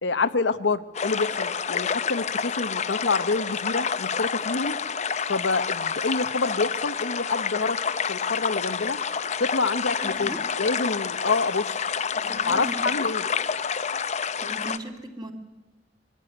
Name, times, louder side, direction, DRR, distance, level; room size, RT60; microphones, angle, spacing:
voice 1, 0.0-4.7 5.3-9.0 9.4-11.7 12.5-13.3, left 3 dB, 90° left, 11 dB, 0.9 m, -27 dB
sound 1, 0.9-14.8, left 6 dB, 40° left, 0.6 m, -28 dB
voice 2, 10.0-10.4 12.1-12.8 14.4-15.3, right 1 dB, 25° right, 3 dB, 2.4 m, -37 dB
22.5 x 14.0 x 9.8 m, 1.1 s
head